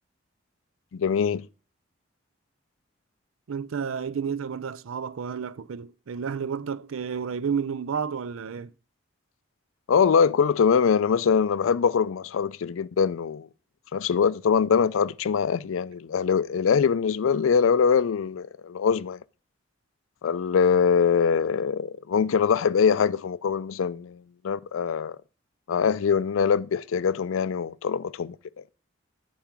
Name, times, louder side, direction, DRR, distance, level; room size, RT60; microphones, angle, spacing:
voice 1, 0.9-1.5 9.9-13.5 13.9-19.2 20.2-25.2 25.7-28.6, left 6 dB, 80° left, 0.4 m, -23 dB
voice 2, 3.5-8.7, right 6 dB, 85° right, 0.5 m, -31 dB
10.5 x 4.7 x 5.1 m
head